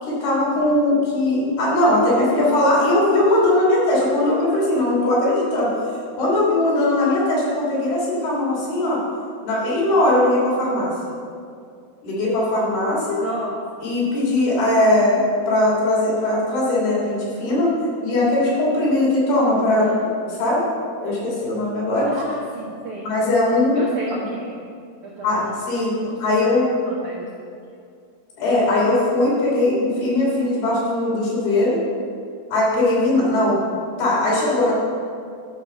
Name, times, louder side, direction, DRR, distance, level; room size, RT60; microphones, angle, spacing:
voice 1, 0.0-5.7 6.2-9.0 9.4-10.9 12.0-13.2 13.8-17.7 18.0-19.9 20.4-20.6 21.0-22.1 23.0-23.8 25.2-26.7 28.4-31.8 32.5-33.6 34.0-34.7, left 1 dB, 65° left, -6 dB, 4.9 m, -19 dB
voice 2, 13.2-13.6 19.7-20.1 22.1-23.1 23.7-24.6 25.0-25.5 26.0-27.3, right 1 dB, 75° right, -3 dB, 1.8 m, -33 dB
12.0 x 4.9 x 6.7 m, 2.3 s
omnidirectional pair, 4.8 m